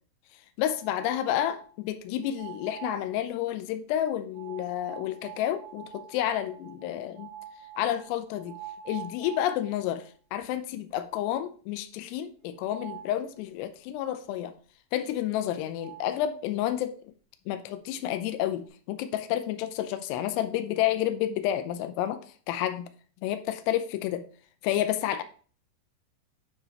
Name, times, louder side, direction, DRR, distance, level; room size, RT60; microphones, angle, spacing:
voice 1, 0.6-7.3 7.8-8.6 8.9-14.5 14.9-17.1 17.5-22.2 22.5-22.9 23.2-24.3 24.6-25.2, left 11 dB, 85° left, 2.4 m, -30 dB
sound 1, 0.7-1.7 2.2-3.1 4.3-10.0 10.4-10.5 10.9-11.0 12.6-13.2 15.4-15.5 15.8-16.1, right 10 dB, 55° right, 2.4 m, -45 dB
9.5 x 4.8 x 2.9 m
omnidirectional pair, 5.4 m